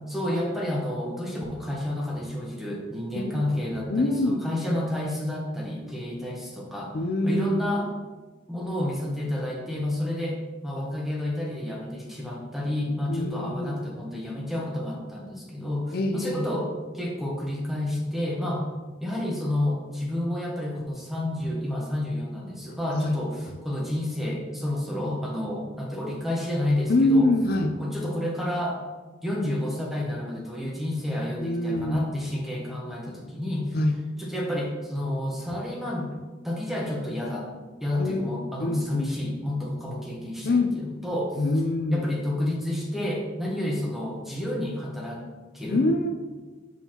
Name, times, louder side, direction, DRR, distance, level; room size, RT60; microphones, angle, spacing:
voice 1, 0.1-6.9 7.2-7.9 8.5-16.7 16.9-18.7 19.0-27.3 27.8-28.8 29.2-33.8 34.2-36.1 36.4-37.5 37.8-41.4 41.9-45.2 45.5-45.8, left 1 dB, ahead, -2 dB, 1.0 m, -30 dB
voice 2, 3.9-4.4 6.9-7.7 13.1-13.8 15.9-16.5 22.9-23.2 26.9-27.7 31.4-32.1 33.7-33.9 38.0-39.1 40.4-40.7 41.4-42.1 45.7-46.1, left 2 dB, 55° left, 5 dB, 0.4 m, -24 dB
6.1 x 5.4 x 2.9 m, 1.3 s
head